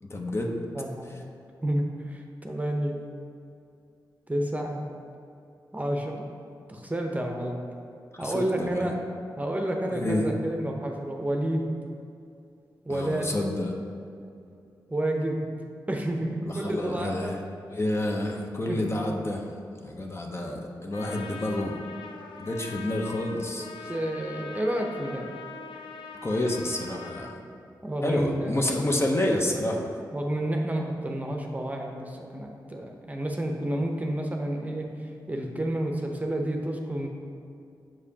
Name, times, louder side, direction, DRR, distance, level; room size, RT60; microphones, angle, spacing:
voice 1, 0.0-0.6 8.1-8.9 9.9-10.3 12.9-13.7 16.4-17.4 17.7-19.4 19.8-21.8 22.4-23.9 26.2-27.3 28.0-29.9, left 1 dB, 35° left, 0 dB, 0.8 m, -29 dB
voice 2, 0.7-1.1 1.6-3.1 4.3-4.8 5.7-6.3 6.7-7.6 8.2-8.9 9.4-11.7 12.8-13.3 14.9-15.5 15.9-17.3 18.7-19.0 23.9-25.3 27.8-28.8 30.1-34.9 35.3-37.1, right 1 dB, 20° right, 2 dB, 0.7 m, -30 dB
Trumpet, 20.9-27.4, left 4 dB, 90° left, 0.4 m, -42 dB
7.3 x 4.8 x 2.8 m, 2.5 s
cardioid pair, 45°, 8 cm